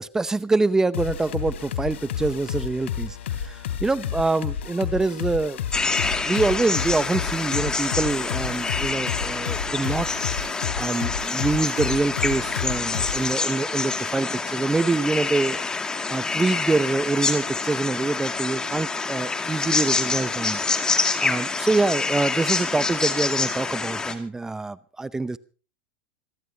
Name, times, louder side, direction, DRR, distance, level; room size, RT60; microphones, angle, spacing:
voice 1, 0.0-5.6 5.9-10.3 10.8-15.6 16.1-20.6 21.2-25.4, right 3 dB, 10° right, 0.7 m, -25 dB
sound 1, 0.9-13.3, left 8 dB, 85° left, 3.2 m, -31 dB
sound 2, 5.7-24.1, left 4 dB, 10° left, 2.3 m, -27 dB
27.0 x 13.0 x 2.8 m
supercardioid pair, 140°, 6 cm